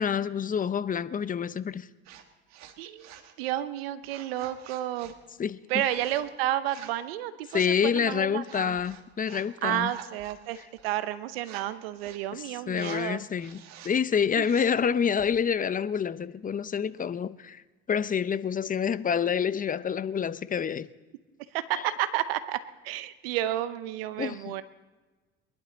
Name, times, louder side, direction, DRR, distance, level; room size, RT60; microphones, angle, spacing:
voice 1, 0.0-1.9 5.4-5.6 7.5-9.9 12.3-17.6 17.9-20.9 21.7-21.8 24.2-24.6, left 7 dB, 30° left, 0.7 m, -28 dB
sound 1, 2.0-2.2 2.5-3.3 4.0-5.2 5.7-6.2 6.6-7.0 7.4-7.8 8.4-9.5 9.8-11.0 11.4-11.7 11.9-12.3 12.7-13.1 13.4-13.9 14.4-14.8 15.2-15.3, right 10 dB, 65° right, 1.6 m, -48 dB
voice 2, 2.8-3.1 3.4-5.1 5.7-8.8 9.6-10.6 10.8-13.2 14.4-14.5 21.5-22.6 22.8-24.6, right 13 dB, 85° right, 0.9 m, -31 dB
22.5 x 11.5 x 4.0 m
hypercardioid pair, 70°, 29 cm